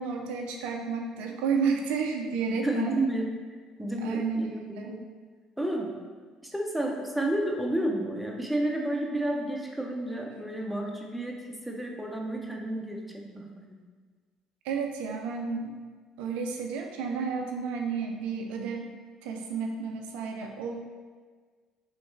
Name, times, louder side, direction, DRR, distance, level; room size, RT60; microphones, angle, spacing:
voice 1, 0.0-3.0 4.0-4.5 4.7-5.0 14.6-15.8 16.2-18.9 19.2-20.8, right 5 dB, 70° right, 3 dB, 0.3 m, -31 dB
voice 2, 2.6-3.3 3.8-5.1 5.6-6.0 6.4-13.8, right 1 dB, ahead, 0 dB, 0.6 m, -31 dB
3.1 x 3.1 x 3.2 m, 1.5 s
hypercardioid pair, 55°, 2 cm